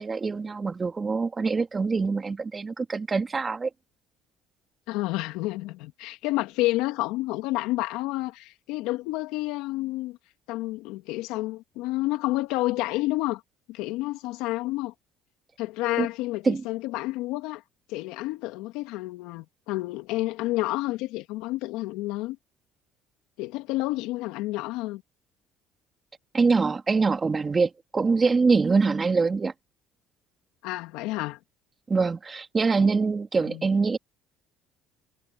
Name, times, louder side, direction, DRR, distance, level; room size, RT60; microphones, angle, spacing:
voice 1, 0.0-3.7 16.0-16.1 16.4-16.6 26.3-29.5 31.9-34.0, right 4 dB, 25° right, 2.6 m, -24 dB
voice 2, 4.9-10.2 10.5-13.4 13.7-14.9 15.6-17.6 17.9-22.4 23.4-25.0 30.6-31.4 33.4-33.7, left 19 dB, 80° left, 2.8 m, -30 dB
supercardioid pair, 90°, 0 cm